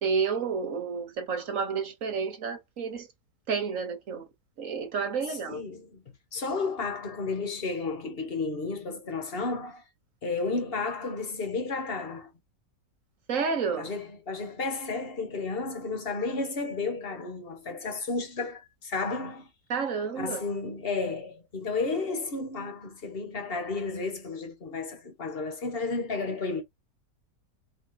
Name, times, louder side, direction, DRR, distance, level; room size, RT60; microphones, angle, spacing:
voice 1, 0.0-3.1 3.5-4.2 4.6-5.6 13.3-13.9 19.7-20.4, right 5 dB, 55° right, 1.4 m, -30 dB
voice 2, 5.3-6.0 6.3-9.8 10.2-12.3 13.8-19.5 20.2-26.6, left 3 dB, 35° left, 1.4 m, -32 dB
5.0 x 2.8 x 3.7 m
omnidirectional pair, 1.8 m